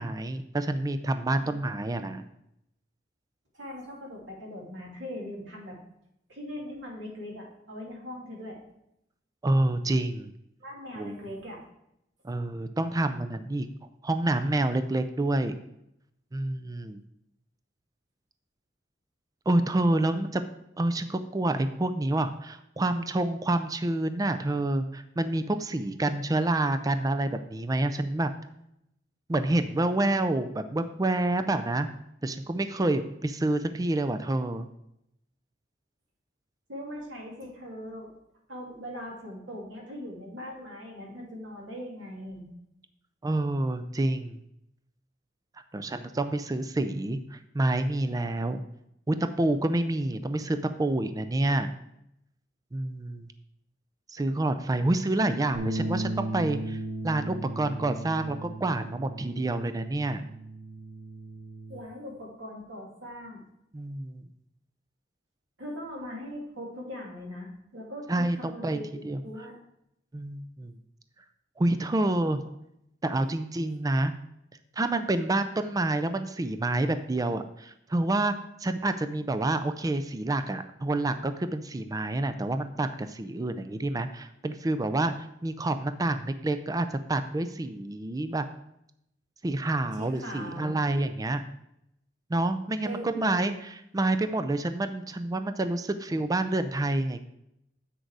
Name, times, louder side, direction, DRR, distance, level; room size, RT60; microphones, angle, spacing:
voice 1, 0.0-2.2 9.4-10.3 11.0-11.2 12.2-13.7 14.0-15.5 16.3-17.0 19.5-20.4 20.8-28.3 29.3-31.9 32.2-34.7 43.2-44.4 45.7-48.6 49.1-51.7 52.7-53.3 54.1-56.8 57.0-60.2 63.7-64.2 68.1-68.8 69.0-69.2 70.1-70.7 71.6-72.4 73.0-74.1 74.8-78.3 78.6-85.1 85.4-88.4 89.4-91.4 92.3-97.2, right 2 dB, 20° right, 10 dB, 0.4 m, -28 dB
voice 2, 3.5-5.8 6.3-8.6 10.6-11.6 36.7-38.1 38.5-42.5 61.7-63.4 65.6-68.1 68.3-69.6 72.4-72.5 73.2-73.3 89.9-90.8 92.8-93.4, equal, 85° right, -2 dB, 2.6 m, -40 dB
sound 1, 55.5-61.8, right 2 dB, 60° right, 1.2 m, -36 dB
7.9 x 6.4 x 4.7 m, 0.80 s
head